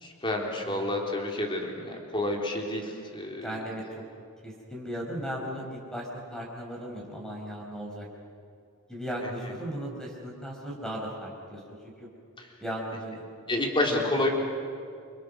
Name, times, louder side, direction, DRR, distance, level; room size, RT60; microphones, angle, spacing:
voice 1, 0.0-3.6 9.2-9.3 13.5-14.3, left 1 dB, 20° left, 0 dB, 3.8 m, -29 dB
voice 2, 0.6-1.0 3.4-4.0 4.4-8.1 8.9-12.1 12.6-13.2 13.9-14.1, equal, 5° left, -1 dB, 4.9 m, -37 dB
30.0 x 25.5 x 6.5 m, 2.4 s
head